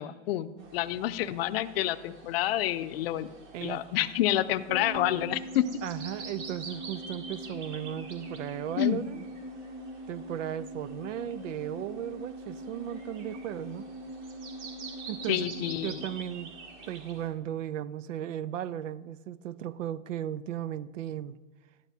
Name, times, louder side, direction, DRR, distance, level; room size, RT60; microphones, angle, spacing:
voice 1, 0.0-3.3 3.6-5.7 8.8-9.0 15.3-16.0, left 13 dB, 55° left, 12 dB, 0.6 m, -28 dB
sound 1, 0.6-17.3, right 4 dB, 65° right, 2.1 m, -48 dB
voice 2, 3.5-3.9 5.8-9.2 10.1-13.9 15.1-15.5 15.8-16.5 16.9-21.3, right 11 dB, 85° right, 17 dB, 0.6 m, -36 dB
sound 2, 4.7-17.2 17.5-17.6, right 1 dB, 10° right, 1.4 m, -43 dB
12.0 x 10.0 x 2.7 m, 1.2 s
supercardioid pair, 150°, 37 cm